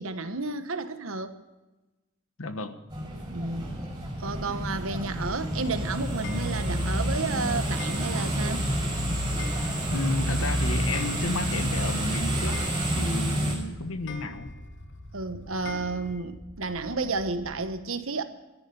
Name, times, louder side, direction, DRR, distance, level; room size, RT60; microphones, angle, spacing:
voice 1, 0.0-1.3 3.3-3.7 4.2-8.7 15.1-18.2, right 3 dB, 85° right, 1.2 m, -32 dB
voice 2, 2.4-2.8 9.9-12.6 12.9-14.5, left 2 dB, 85° left, 1.3 m, -32 dB
sound 1, 2.9-13.6, equal, 20° right, 5.5 m, -29 dB
sound 2, 5.2-17.7, left 1 dB, 25° left, 6.3 m, -46 dB
Clock, 6.2-7.0 7.8-8.5 8.8-8.9 9.4-10.2 10.4-10.5 10.7-11.7 12.0-12.1 12.5-13.3 14.1-14.8 15.7-16.2, left 4 dB, 60° left, 1.0 m, -44 dB
13.5 x 10.5 x 6.9 m
head